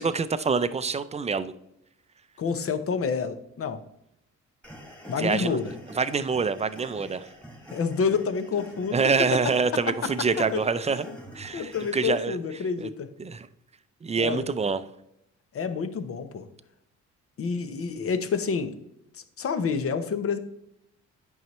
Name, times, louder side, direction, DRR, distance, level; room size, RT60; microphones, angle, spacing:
voice 1, 0.0-1.5 5.2-5.6 6.0-7.3 8.9-11.0 11.3-12.4 12.8-12.9 13.2-13.5 14.0-14.9, right 5 dB, 20° right, 13 dB, 0.4 m, -26 dB
voice 2, 2.4-3.8 5.1-5.7 7.7-9.4 10.0-10.1 10.4-10.6 11.5-13.1 14.1-14.4 15.5-16.4 17.4-18.8 19.1-20.4, left 5 dB, 50° left, 10 dB, 0.8 m, -28 dB
sound 1, 4.6-12.2, equal, 5° left, 1.9 m, -46 dB
8.9 x 5.5 x 3.1 m, 0.80 s
cardioid pair, 90°, 30 cm